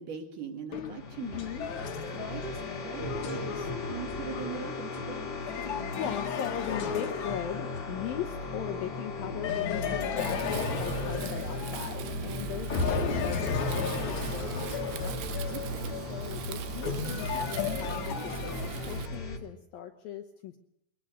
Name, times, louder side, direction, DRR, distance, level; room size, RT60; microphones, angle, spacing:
voice 1, 0.0-1.7 2.1-5.3 15.5-16.0, right 7 dB, 55° right, 5 dB, 2.5 m, -41 dB
sound 1, 0.7-8.1 9.4-12.3 12.7-19.2, left 5 dB, 60° left, 2.0 m, -35 dB
sound 2, 0.9-19.4, left 2 dB, 45° left, 1.6 m, -37 dB
voice 2, 1.2-1.6 5.9-15.2 16.1-20.6, left 9 dB, 75° left, 5 dB, 2.1 m, -39 dB
Wind, 10.2-19.1, right 11 dB, 75° right, 2.9 m, -41 dB
22.0 x 18.5 x 6.5 m, 0.74 s
omnidirectional pair, 5.6 m